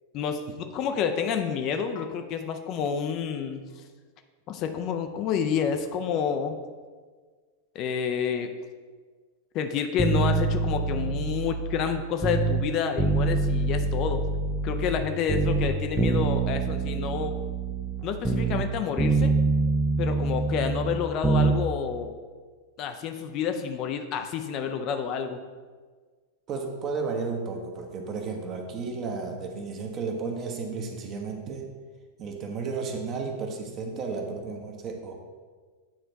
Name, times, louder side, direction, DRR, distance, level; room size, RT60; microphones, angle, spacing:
voice 1, 0.7-3.6 4.5-6.6 7.7-8.5 9.5-14.2 14.6-17.4 18.0-19.3 20.0-22.1 22.8-25.4, left 7 dB, 40° left, 6 dB, 0.5 m, -29 dB
sound 1, 10.0-12.7 13.0-15.0 15.3-18.7 19.0-21.6 21.9-22.0, right 3 dB, 15° right, 0.5 m, -25 dB
voice 2, 26.5-31.7 32.2-35.1, right 4 dB, 35° right, 3 dB, 0.9 m, -33 dB
8.7 x 3.3 x 4.0 m, 1.5 s
figure-of-eight pair, 90°, 0 cm